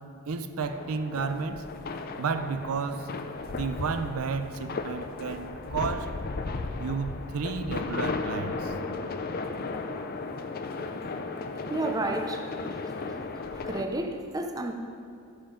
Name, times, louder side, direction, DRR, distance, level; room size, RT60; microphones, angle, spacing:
voice 1, 0.3-1.7 2.2-3.1 3.5-6.2 6.8-8.8 13.6-13.7, right 5 dB, 85° right, 0.5 m, -32 dB
sound 1, 0.6-13.8, left 3 dB, 45° left, 0.4 m, -35 dB
voice 2, 11.7-12.9 13.5-14.7, right 2 dB, 15° right, 0.5 m, -32 dB
13.0 x 5.6 x 4.9 m
head